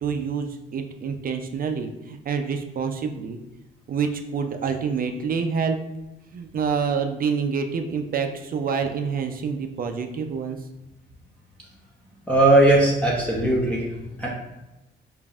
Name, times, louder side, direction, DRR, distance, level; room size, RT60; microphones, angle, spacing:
voice 1, 0.0-3.4 3.9-5.8 6.3-10.6, right 6 dB, 45° right, 6 dB, 0.5 m, -27 dB
voice 2, 12.3-13.8 14.2-14.3, right 2 dB, 5° left, -6 dB, 0.8 m, -18 dB
5.1 x 2.6 x 2.4 m, 1.0 s
cardioid pair, 90°, 20 cm